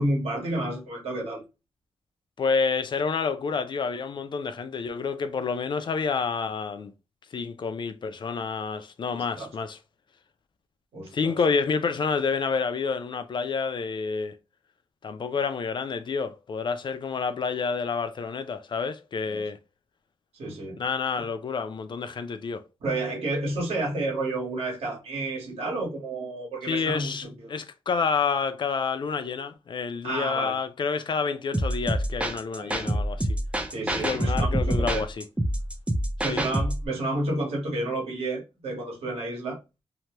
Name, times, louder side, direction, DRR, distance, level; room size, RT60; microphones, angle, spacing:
voice 1, 0.0-1.4 9.4-9.5 10.9-11.4 19.3-19.4 20.3-20.8 21.2-21.3 22.8-27.5 30.0-30.6 32.5-33.0 33.7-35.0 36.2-39.6, right 2 dB, 80° right, 1.4 m, -30 dB
voice 2, 2.4-6.9 7.3-9.8 11.1-14.4 15.0-19.6 20.8-22.6 26.7-33.3 34.0-35.2 36.3-36.4, left 5 dB, 50° left, 0.4 m, -29 dB
sound 1, 31.5-36.9, right 1 dB, 10° right, 0.5 m, -27 dB
2.8 x 2.2 x 3.0 m
wide cardioid pair, 110°, 10 cm